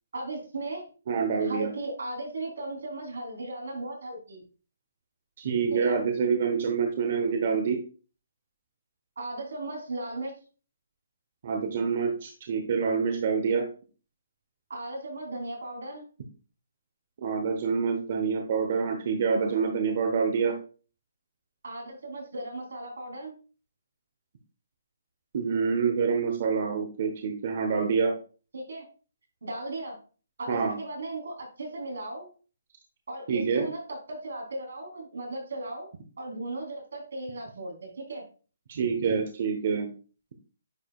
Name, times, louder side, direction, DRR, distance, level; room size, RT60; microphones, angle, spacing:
voice 1, 0.1-0.9 1.4-4.4 5.7-6.0 9.2-10.3 14.7-16.0 21.6-23.3 28.5-28.8 29.4-30.0 30.4-32.3 33.1-35.9 36.2-38.2, right 2 dB, 85° right, 0 dB, 3.6 m, -36 dB
voice 2, 1.1-1.7 5.4-7.8 11.4-13.6 17.2-20.5 25.3-28.1 30.5-30.7 33.3-33.7 38.7-39.9, right 5 dB, 40° right, 4 dB, 1.0 m, -26 dB
9.6 x 4.9 x 2.4 m, 0.37 s
hypercardioid pair, 170°, 0 cm